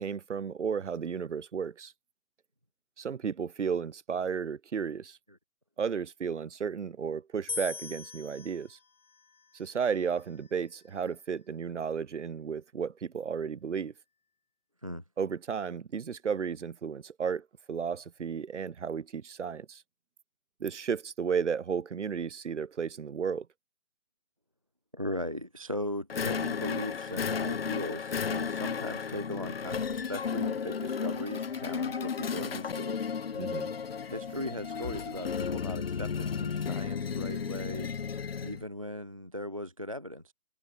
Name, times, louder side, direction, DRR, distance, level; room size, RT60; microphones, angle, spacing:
voice 1, 0.0-1.9 3.0-5.2 5.8-8.8 9.5-13.9 15.2-19.8 20.6-23.5 33.4-33.7, right 6 dB, 55° right, 2.8 m, -33 dB
sound 1, 7.5-10.7, left 5 dB, 80° left, 2.9 m, -43 dB
voice 2, 24.9-33.0 34.1-37.9 38.4-40.3, left 1 dB, 25° right, 0.5 m, -38 dB
sound 2, 26.1-38.6, left 6 dB, 45° left, 0.5 m, -33 dB
hypercardioid pair, 165°, 42 cm